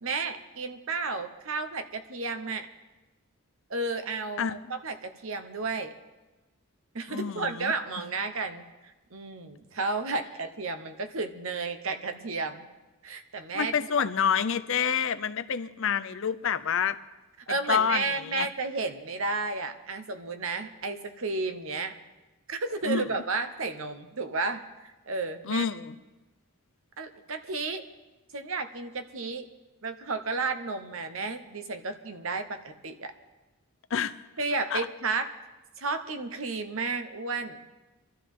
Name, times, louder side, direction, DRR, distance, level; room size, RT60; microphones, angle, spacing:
voice 1, 0.0-2.7 3.7-5.9 6.9-12.7 13.0-13.7 14.0-14.1 17.5-21.9 22.5-25.7 27.0-27.8 28.3-29.5 29.8-33.1 34.4-35.3 35.8-37.7, right 3 dB, 65° right, 8 dB, 1.1 m, -32 dB
voice 2, 4.4-4.7 7.1-7.7 13.5-17.0 17.7-18.5 22.9-23.0 25.5-26.0 33.9-34.1 34.7-34.9, left 7 dB, 60° left, 12 dB, 0.6 m, -28 dB
24.0 x 13.0 x 3.7 m, 1.1 s
head